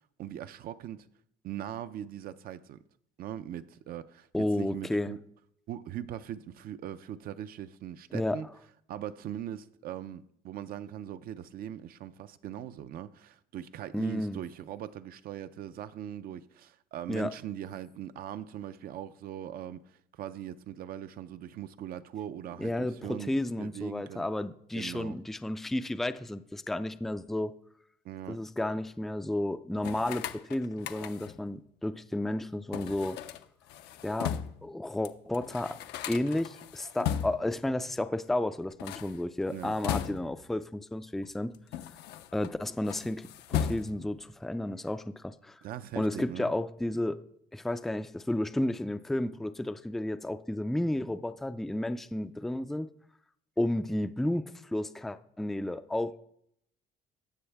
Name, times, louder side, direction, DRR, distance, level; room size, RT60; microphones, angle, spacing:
voice 1, 0.2-1.1 1.4-2.8 3.2-5.2 5.7-8.5 8.9-24.2 24.7-25.2 28.0-28.4 39.5-39.7 45.6-46.5, right 10 dB, 60° right, 0.5 m, -40 dB
voice 2, 4.3-5.1 8.1-8.4 13.9-14.4 17.1-17.3 22.6-27.6 28.3-33.2 34.0-35.8 36.1-41.5 42.3-45.6 46.0-47.2 47.5-52.9 53.6-56.2, left 1 dB, ahead, 0.3 m, -32 dB
sound 1, 29.8-31.5 32.7-34.7 35.1-35.2 35.3-37.6 38.7-40.5 41.2-42.5 42.8-44.2, left 9 dB, 80° left, 0.6 m, -37 dB
15.0 x 6.3 x 3.4 m
cardioid pair, 110°, 17 cm